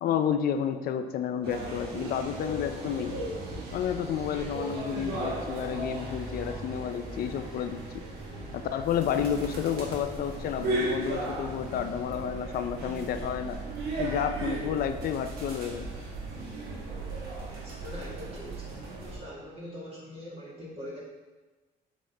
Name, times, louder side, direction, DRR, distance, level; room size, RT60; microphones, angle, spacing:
voice 1, 0.0-3.1 3.7-7.8 8.5-13.6 14.0-15.9, left 8 dB, 65° left, 8 dB, 0.5 m, -30 dB
sound 1, 1.4-19.2, right 2 dB, 65° right, 1.4 m, -36 dB
voice 2, 17.4-18.8 19.1-21.0, left 1 dB, 35° right, -6 dB, 1.8 m, -43 dB
7.7 x 4.2 x 3.4 m, 1.2 s
cardioid pair, 110°, 17 cm